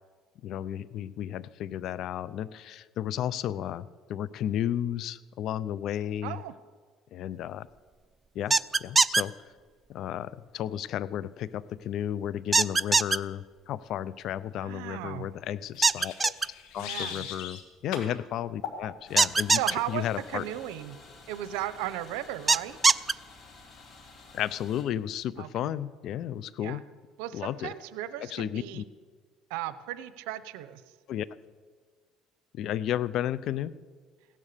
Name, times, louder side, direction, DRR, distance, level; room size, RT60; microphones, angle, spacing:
voice 1, 0.4-6.4 7.1-7.7 8.3-9.3 9.9-16.3 16.7-19.6 19.9-20.4 24.3-26.8 27.3-27.7 28.3-28.8 31.1-31.3 32.6-33.7, left 11 dB, 60° left, 18 dB, 0.5 m, -33 dB
voice 2, 6.2-6.5 14.6-15.3 16.8-17.3 19.6-21.0 21.3-22.8 25.4-25.5 26.6-26.8 27.2-28.8 29.5-30.8, right 13 dB, 90° right, 14 dB, 0.8 m, -36 dB
sound 1, 8.5-9.2 12.5-13.2 15.8-16.5 19.2-19.7 22.5-23.1, right 3 dB, 20° right, 0.4 m, -21 dB
sound 2, 15.7-17.6 17.9-18.1 18.6-18.8, left 8 dB, 80° left, 2.2 m, -38 dB
sound 3, 19.1-24.8, left 3 dB, 40° left, 3.3 m, -51 dB
16.5 x 11.0 x 6.7 m, 1.5 s
cardioid pair, 110°, 0 cm